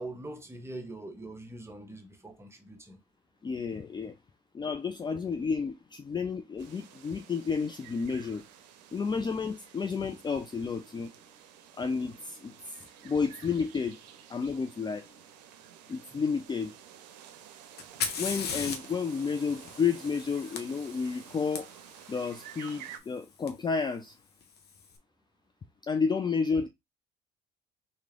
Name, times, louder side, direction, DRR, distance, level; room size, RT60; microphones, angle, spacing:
voice 1, 0.0-3.0 16.1-16.2, right 2 dB, 10° right, 1.1 m, -43 dB
voice 2, 3.4-4.2 4.5-8.4 8.9-11.1 11.8-12.5 13.0-14.0 14.3-15.1 15.9-16.7 18.2-21.7 22.1-24.2 25.9-26.7, left 5 dB, 20° left, 0.4 m, -31 dB
sound 1, 6.6-23.0, right 10 dB, 85° right, 0.5 m, -51 dB
Fire, 17.8-21.6 23.5-23.6 24.4-24.8, left 6 dB, 50° left, 0.9 m, -37 dB
3.1 x 2.7 x 3.6 m
hypercardioid pair, 60°, 21 cm